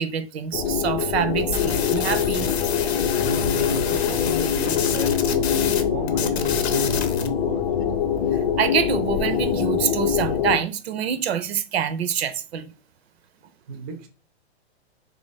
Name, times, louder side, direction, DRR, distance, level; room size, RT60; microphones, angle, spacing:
voice 1, 0.0-2.5 8.3-12.7, right 8 dB, 70° right, 0.6 m, -26 dB
sound 1, 0.5-10.6, left 8 dB, 40° left, 0.6 m, -24 dB
sound 2, 1.5-5.8 6.1-7.3, left 8 dB, 75° left, 0.7 m, -29 dB
voice 2, 3.2-7.7 13.7-14.1, right 4 dB, 20° right, 0.4 m, -33 dB
2.9 x 2.5 x 4.0 m
hypercardioid pair, 135°, 33 cm